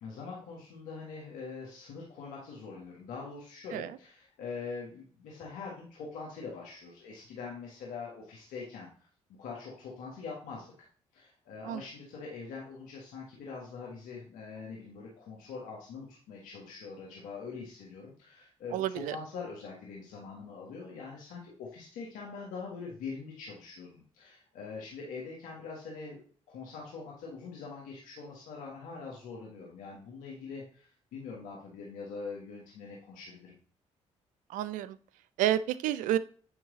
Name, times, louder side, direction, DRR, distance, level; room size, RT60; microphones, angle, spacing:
voice 1, 0.0-9.1 9.4-10.7 11.1-33.6, left 4 dB, 85° left, -3 dB, 1.5 m, -43 dB
voice 2, 18.7-19.2 34.5-35.0 35.4-36.2, right 12 dB, 80° right, 15 dB, 0.4 m, -29 dB
8.7 x 3.2 x 3.8 m, 0.43 s
supercardioid pair, 55°, 13 cm